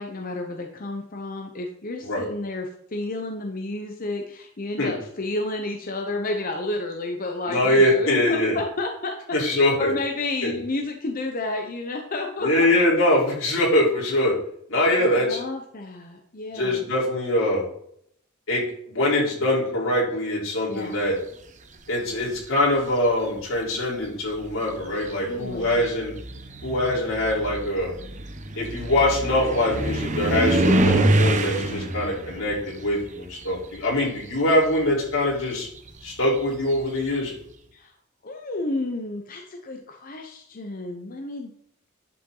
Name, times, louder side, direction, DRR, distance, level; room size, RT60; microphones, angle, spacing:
voice 1, 0.0-9.2 9.8-12.7 15.0-16.8 20.7-21.0 24.9-25.9 30.9-31.2 37.7-37.9 38.2-41.5, left 2 dB, 45° left, 3 dB, 0.8 m, -31 dB
voice 2, 7.5-8.6 9.3-9.9 10.4-10.5 12.4-14.4 14.7-15.4 16.5-17.7 18.5-21.2 21.9-26.1 26.6-27.9 28.5-35.7 36.0-37.3, left 1 dB, 90° left, -4 dB, 4.0 m, -23 dB
sound 1, 22.1-22.6 23.6-23.7 24.3-34.2 34.5-37.1, right 1 dB, 40° right, 0.9 m, -26 dB
11.0 x 5.9 x 3.9 m, 0.68 s
head